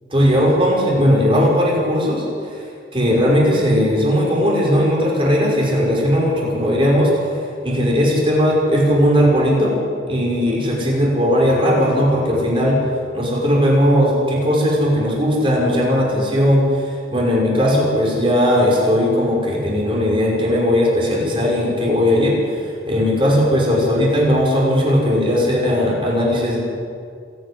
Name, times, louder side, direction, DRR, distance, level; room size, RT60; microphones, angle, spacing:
voice 1, 0.1-2.6 2.9-7.3 7.6-9.8 10.1-12.8 13.1-26.6, equal, 30° right, -3 dB, 5.7 m, -17 dB
27.0 x 10.0 x 9.8 m, 2.3 s
head